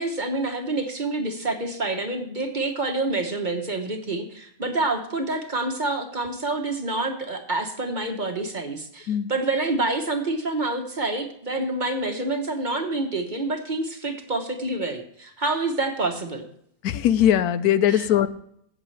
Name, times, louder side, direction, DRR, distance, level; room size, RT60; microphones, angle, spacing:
voice 1, 0.0-16.5 17.9-18.1, right 2 dB, 35° right, 4 dB, 1.1 m, -27 dB
voice 2, 16.8-18.3, left 10 dB, 85° left, 13 dB, 1.2 m, -20 dB
16.5 x 7.4 x 3.3 m, 0.68 s
omnidirectional pair, 1.6 m